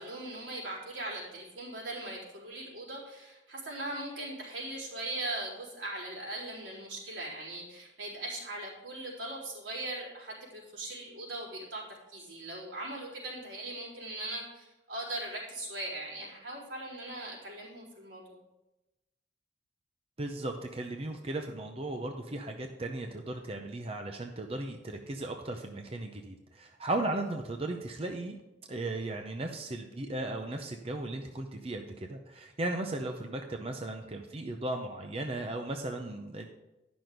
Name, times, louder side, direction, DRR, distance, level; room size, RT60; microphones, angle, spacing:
voice 1, 0.0-18.4, right 1 dB, 85° right, -6 dB, 4.1 m, -40 dB
voice 2, 20.2-28.4 28.7-36.5, right 2 dB, 35° right, 4 dB, 0.6 m, -36 dB
11.0 x 6.1 x 5.1 m, 1.0 s
head